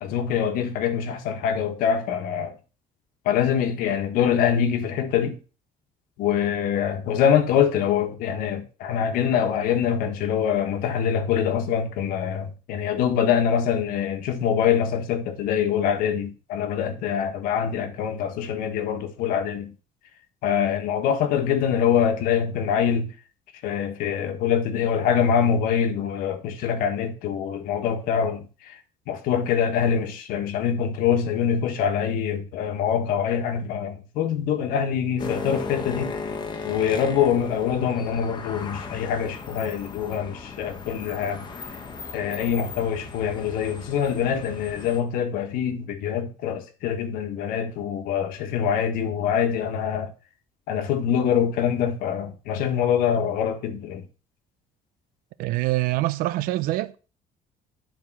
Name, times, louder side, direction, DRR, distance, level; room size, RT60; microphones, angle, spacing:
voice 1, 0.0-2.5 3.2-5.4 6.2-19.7 20.4-23.1 23.6-28.8 29.1-36.1 36.6-41.4 42.1-50.1 50.7-54.0, left 8 dB, 85° left, 1.5 m, -24 dB
sound 1, 35.2-45.0, left 4 dB, 30° left, 1.3 m, -36 dB
voice 2, 55.4-57.0, right 17 dB, 85° right, 0.7 m, -25 dB
10.5 x 4.8 x 6.1 m
cardioid pair, 150°, 14 cm